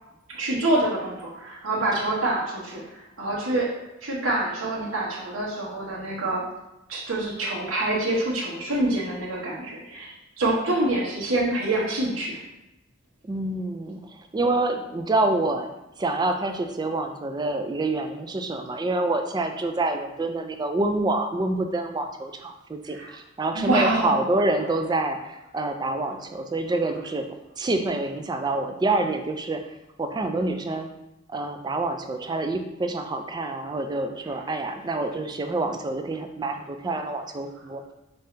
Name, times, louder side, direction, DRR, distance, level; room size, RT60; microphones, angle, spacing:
voice 1, 0.3-3.7 4.0-6.4 6.9-12.4 22.9-23.1 23.5-24.2, right 2 dB, 80° right, -5 dB, 1.2 m, -26 dB
voice 2, 13.2-15.7 16.0-27.3 27.6-29.6 30.0-30.9 31.3-37.8, right 2 dB, 20° right, 6 dB, 0.3 m, -27 dB
5.2 x 2.7 x 3.3 m, 0.93 s
head